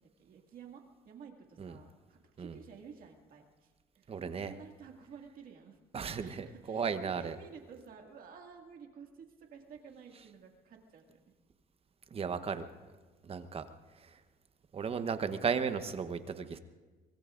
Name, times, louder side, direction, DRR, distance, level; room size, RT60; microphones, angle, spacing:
voice 1, 0.0-5.8 6.1-11.3, right 6 dB, 55° right, 2 dB, 2.1 m, -53 dB
voice 2, 4.1-4.5 5.9-7.3 12.1-12.7 13.2-13.6 14.0-14.2 14.7-16.6, right 6 dB, 35° right, 10 dB, 1.0 m, -35 dB
24.0 x 22.0 x 2.5 m, 1.3 s
cardioid pair, 110°, 17 cm